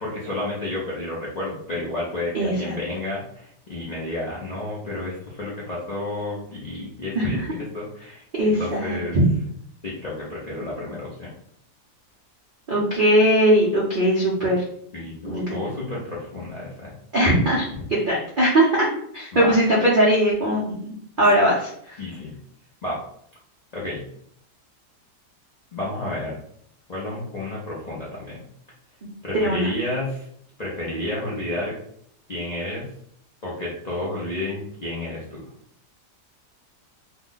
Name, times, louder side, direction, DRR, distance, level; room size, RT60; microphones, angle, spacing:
voice 1, 0.0-9.2 9.8-11.3 14.9-17.0 19.3-19.6 22.0-22.4 22.8-23.0 23.7-24.0 25.7-26.4 26.9-28.4 29.2-30.2 30.6-31.7 32.3-32.9 33.4-35.5, left 1 dB, 60° left, -6 dB, 0.4 m, -31 dB
voice 2, 2.3-2.7 7.1-7.5 8.3-9.3 12.7-14.6 15.2-15.6 17.1-18.9 19.1-20.7 21.2-21.7 29.3-29.7, right 1 dB, 65° right, -5 dB, 0.5 m, -20 dB
3.1 x 2.1 x 3.7 m, 0.67 s
omnidirectional pair, 1.8 m